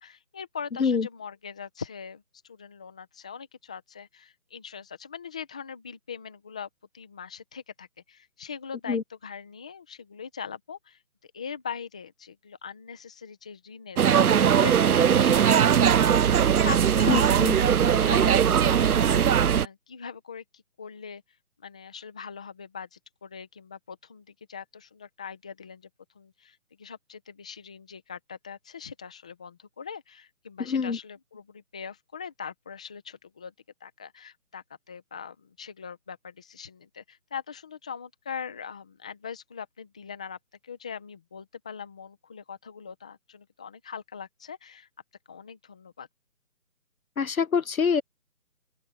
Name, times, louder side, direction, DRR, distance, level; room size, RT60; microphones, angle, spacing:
voice 1, 0.0-6.7 6.9-11.0 11.3-21.2 21.6-25.9 26.1-33.5 33.8-40.4 40.6-44.9 45.3-46.1, left 6 dB, 5° left, 0.8 m, -41 dB
sound 1, 14.0-19.7, right 8 dB, 80° right, 0.6 m, -20 dB
voice 2, 17.1-17.6 30.7-31.0 47.2-48.0, left 6 dB, 70° left, 1.0 m, -25 dB
open air
figure-of-eight pair, 155°, 43 cm